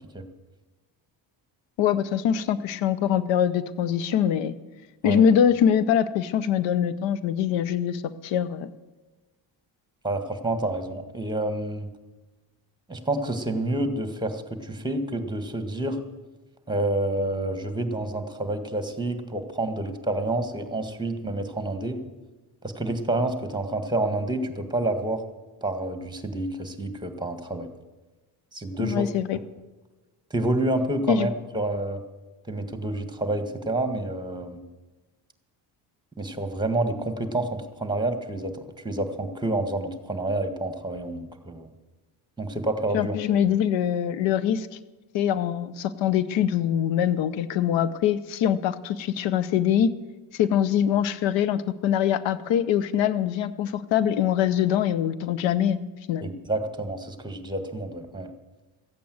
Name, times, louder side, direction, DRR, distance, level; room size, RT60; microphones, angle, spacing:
voice 1, 1.8-4.5 5.0-8.7 28.8-29.4 31.1-31.3 42.9-44.7 45.1-49.9 50.3-55.8 56.1-56.3, left 9 dB, 85° left, 16 dB, 0.7 m, -23 dB
voice 2, 10.0-11.9 12.9-16.0 16.7-22.0 22.6-25.2 25.6-27.7 28.5-29.0 30.3-32.0 32.5-34.6 36.2-38.5 38.8-41.7 42.4-43.2 56.2-58.3, right 2 dB, 10° right, 8 dB, 1.7 m, -28 dB
14.5 x 8.6 x 7.8 m, 1.2 s
cardioid pair, 80°, 44 cm